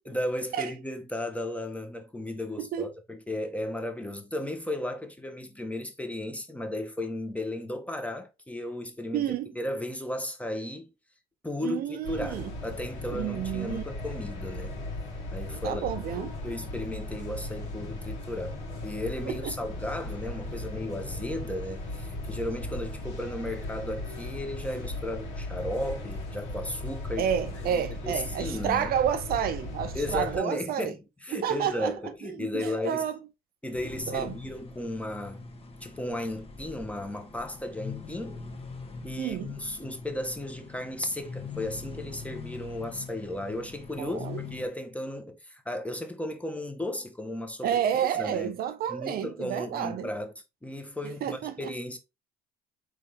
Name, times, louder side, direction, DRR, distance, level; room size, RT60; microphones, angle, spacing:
voice 1, 0.0-10.9 11.4-14.8 15.3-18.6 18.8-28.9 29.9-33.1 33.6-35.5 35.8-38.4 39.0-47.8 48.1-48.5 48.9-50.3 50.6-52.0, left 1 dB, 5° left, 1.0 m, -35 dB
voice 2, 2.6-2.9 9.1-9.5 11.6-12.5 13.1-13.8 15.6-16.3 19.3-19.5 27.2-30.9 31.3-31.9 32.2-33.1 34.1-34.4 39.2-39.5 44.0-44.4 47.6-50.1 51.2-51.7, right 9 dB, 55° right, 0.4 m, -30 dB
sound 1, 12.0-30.4, left 2 dB, 75° left, 1.6 m, -37 dB
sound 2, 33.7-44.7, left 4 dB, 30° left, 1.1 m, -43 dB
3.8 x 3.1 x 3.4 m
supercardioid pair, 75°, 18 cm